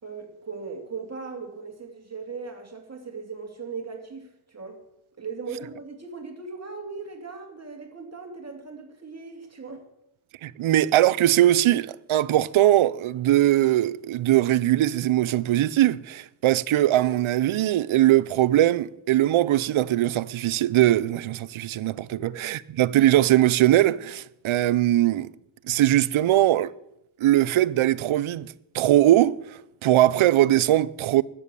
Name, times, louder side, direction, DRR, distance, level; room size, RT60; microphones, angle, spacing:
voice 1, 0.0-4.8 5.2-9.9 22.1-22.2, right 4 dB, 30° right, 2.5 m, -38 dB
voice 2, 10.4-22.1 22.4-25.3 25.7-26.7 27.2-31.2, right 14 dB, 80° right, 0.6 m, -21 dB
14.0 x 10.0 x 6.9 m
cardioid pair, 95°, 48 cm